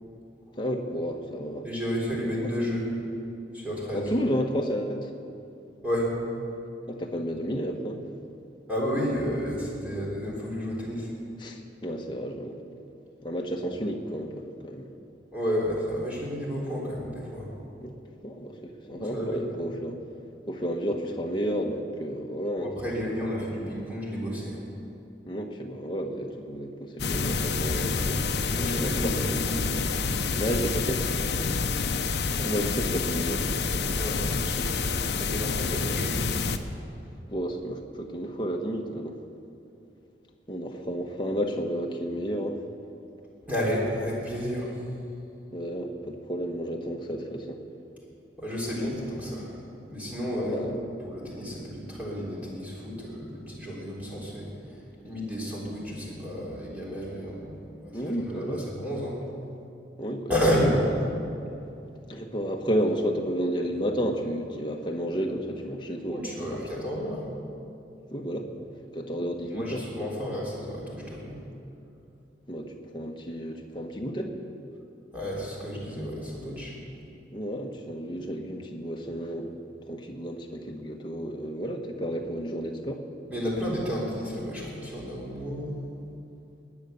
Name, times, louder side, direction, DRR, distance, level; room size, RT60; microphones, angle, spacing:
voice 1, 0.6-1.6 3.9-5.1 6.9-8.0 11.4-12.6 13.2-14.9 17.8-17.9 18.2-19.9 20.5-23.3 25.3-28.0 28.6-29.1 30.0-31.0 32.4-34.0 37.3-39.2 40.5-42.6 45.5-47.6 50.4-50.8 57.9-58.7 60.0-60.3 60.6-60.9 62.1-66.8 68.1-68.5 68.9-70.1 72.5-74.3 77.3-79.5 79.9-83.0, equal, 25° left, 2 dB, 1.3 m, -32 dB
voice 2, 1.6-2.9 3.5-4.1 5.8-6.1 8.7-11.1 15.3-17.5 18.9-19.5 22.6-24.6 27.7-29.8 31.3-31.5 33.9-34.9 35.2-36.3 43.5-44.7 48.4-49.5 49.9-50.7 51.0-54.5 55.0-57.6 57.8-59.2 60.3-60.8 66.1-67.3 69.5-71.3 75.1-76.8 83.3-85.9, equal, 10° right, -6 dB, 3.7 m, -31 dB
sound 1, 27.0-36.6, left 4 dB, 70° left, 0.8 m, -28 dB
21.5 x 9.8 x 6.9 m, 2.7 s
head